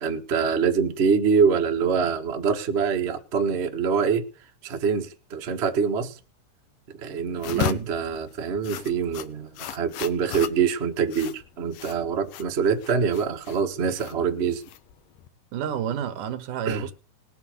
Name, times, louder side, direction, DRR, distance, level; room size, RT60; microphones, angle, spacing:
voice 1, 0.0-4.2 4.6-6.2 7.0-14.6 16.6-16.8, right 6 dB, 40° right, 0.9 m, -25 dB
sound 1, 7.4-15.3, left 12 dB, 90° left, 2.7 m, -36 dB
voice 2, 7.5-7.9 15.5-16.9, right 9 dB, 80° right, 2.8 m, -30 dB
19.5 x 8.0 x 5.2 m
omnidirectional pair, 3.7 m